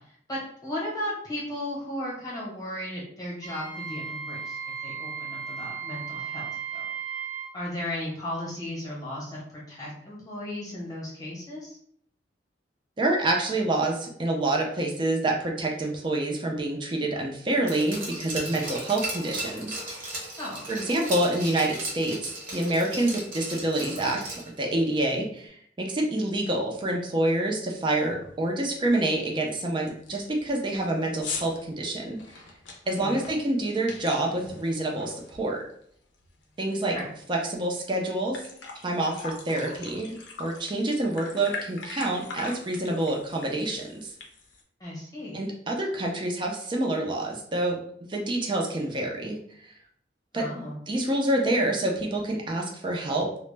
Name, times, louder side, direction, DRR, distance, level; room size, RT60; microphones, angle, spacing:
voice 1, 0.3-4.6 4.8-6.9 7.5-11.8 20.4-20.7 32.8-33.2 36.8-37.1 44.8-45.4 50.3-50.8, left 1 dB, 20° left, -5 dB, 0.9 m, -35 dB
Wind instrument woodwind instrument, 3.4-7.5, right 7 dB, 80° right, 0.5 m, -35 dB
voice 2, 13.0-19.8 20.7-32.2 32.9-35.6 36.6-36.9 37.3-38.4 38.8-44.1 45.3-49.7 50.3-50.5 50.9-53.3, right 1 dB, 25° right, 0 dB, 0.4 m, -27 dB
Glass, 17.7-24.6 24.9-25.0, right 1 dB, 50° right, 0.7 m, -36 dB
sound 1, 26.6-26.7 27.0-27.3 27.6-27.7 28.1-28.4 28.9-29.0 29.5-29.6 29.9-35.8 36.1-37.4 37.8-37.9 38.2-44.6, left 4 dB, 75° left, 0.5 m, -41 dB
2.1 x 2.0 x 3.2 m, 0.65 s
head